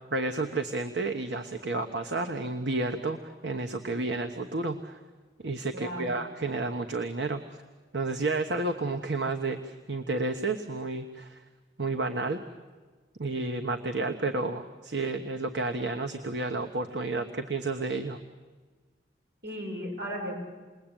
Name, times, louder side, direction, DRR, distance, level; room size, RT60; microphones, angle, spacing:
voice 1, 0.1-5.0 5.4-7.4 7.9-11.4 11.8-12.4 13.2-18.2, right 2 dB, 85° right, 5 dB, 1.3 m, -31 dB
voice 2, 5.7-6.2 19.4-20.3, equal, 70° right, -1 dB, 7.5 m, -35 dB
29.0 x 21.0 x 9.0 m, 1.4 s
head